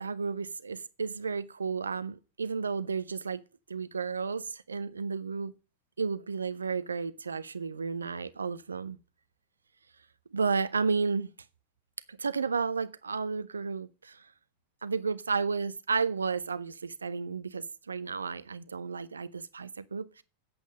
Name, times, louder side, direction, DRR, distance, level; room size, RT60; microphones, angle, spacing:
voice 1, 0.0-3.4 3.7-5.5 6.0-9.0 10.3-11.3 12.1-14.2 14.8-20.2, right 5 dB, 75° right, 0.6 m, -32 dB
8.7 x 8.2 x 6.4 m
figure-of-eight pair, 90°, 0 cm